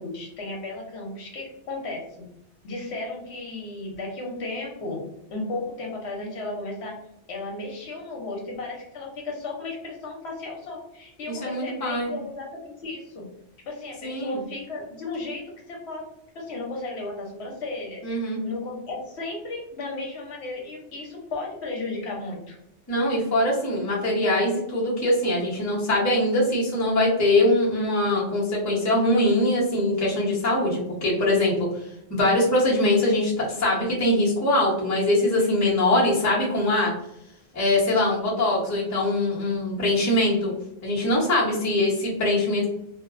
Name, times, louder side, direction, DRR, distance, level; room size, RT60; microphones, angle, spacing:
voice 1, 0.0-2.3 2.6-6.9 7.3-13.3 13.7-16.0 16.3-18.0 18.4-22.6, left 2 dB, 70° left, -1 dB, 0.9 m, -34 dB
voice 2, 11.4-12.1 14.0-14.4 18.0-18.4 22.9-31.7 32.1-36.9 37.5-40.5 40.8-42.7, left 1 dB, 20° left, -6 dB, 0.6 m, -22 dB
2.5 x 2.1 x 2.4 m, 0.79 s
omnidirectional pair, 1.2 m